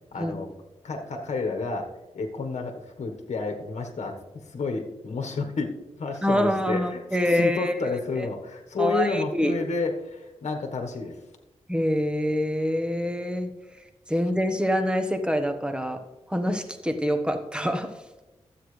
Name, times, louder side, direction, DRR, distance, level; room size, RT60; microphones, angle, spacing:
voice 1, 0.1-0.5 0.8-1.9 2.1-4.1 4.5-5.7 6.0-7.0 7.3-11.2, left 4 dB, 75° left, 4 dB, 1.3 m, -30 dB
voice 2, 6.2-7.8 8.2-8.3 8.8-9.5 11.7-13.5 14.1-16.0 16.3-17.9, equal, 10° right, 7 dB, 1.1 m, -25 dB
13.0 x 8.0 x 3.2 m, 1.0 s
cardioid pair, 70°, 12 cm